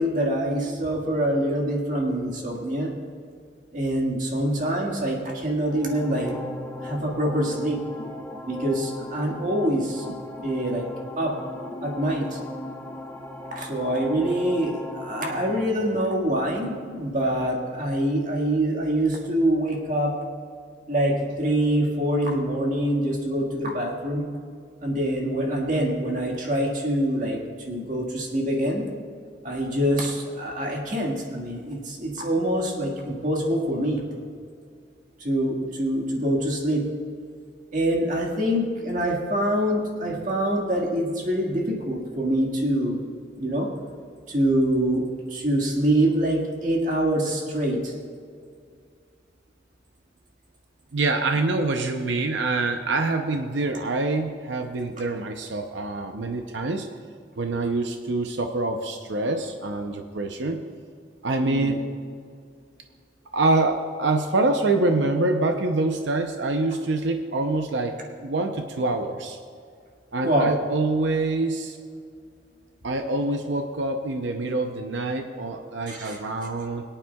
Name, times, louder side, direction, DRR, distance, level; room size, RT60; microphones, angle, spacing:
voice 1, 0.0-2.9 3.7-6.3 6.8-7.8 8.5-10.1 10.4-10.9 11.2-11.4 11.8-12.4 13.5-20.2 20.9-24.2 24.8-27.4 27.7-28.9 29.4-34.0 35.2-36.9 37.7-43.0 43.4-43.7 44.3-45.0 45.3-47.9 61.4-61.8 70.2-70.5 75.9-76.2, right 1 dB, 45° right, -1 dB, 1.8 m, -25 dB
sound 1, 5.6-15.6, left 1 dB, 10° left, 0.7 m, -38 dB
voice 2, 50.9-56.9 57.4-60.6 61.2-61.8 63.3-69.4 70.1-71.8 72.8-76.8, right 2 dB, 70° right, 5 dB, 0.7 m, -25 dB
22.5 x 8.8 x 2.3 m, 2.2 s
head